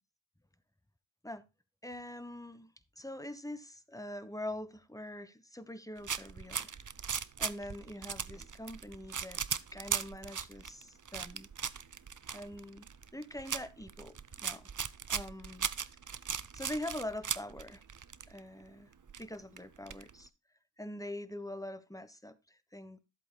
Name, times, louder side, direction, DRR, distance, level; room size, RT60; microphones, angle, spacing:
voice 1, 1.8-6.7 7.4-9.4 9.7-11.5 12.3-12.9 13.1-14.1 14.4-14.7 15.1-15.7 16.5-17.8 18.3-18.9 19.2-20.3 20.8-23.0, left 1 dB, 5° left, 1.3 m, -43 dB
sound 1, 6.0-18.4 18.6-18.7 18.9-20.3, right 7 dB, 40° right, 0.7 m, -38 dB
14.5 x 8.0 x 2.2 m
cardioid pair, 45°, 46 cm